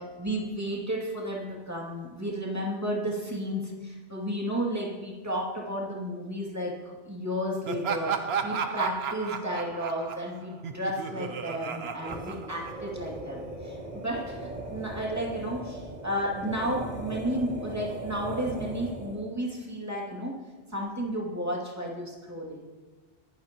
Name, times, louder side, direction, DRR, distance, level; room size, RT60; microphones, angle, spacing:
voice 1, 0.0-20.4 20.7-22.6, equal, 15° right, -3 dB, 2.5 m, -33 dB
Laughter, 7.6-13.1, right 6 dB, 65° right, 1.0 m, -34 dB
sound 1, 11.9-19.3, right 1 dB, 35° right, 2.3 m, -39 dB
23.0 x 13.0 x 3.0 m, 1.4 s
omnidirectional pair, 1.2 m